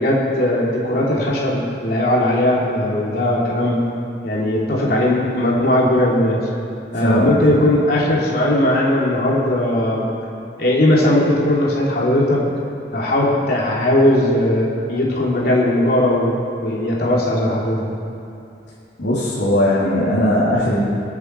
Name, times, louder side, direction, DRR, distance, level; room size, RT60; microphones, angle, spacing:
voice 1, 0.0-3.8 4.2-6.5 6.9-10.1 10.6-12.4 12.9-17.9, left 1 dB, 60° left, -4 dB, 3.1 m, -18 dB
voice 2, 7.0-7.6 19.0-20.8, left 1 dB, 85° left, -9 dB, 3.0 m, -18 dB
24.0 x 8.2 x 4.6 m, 2.6 s
head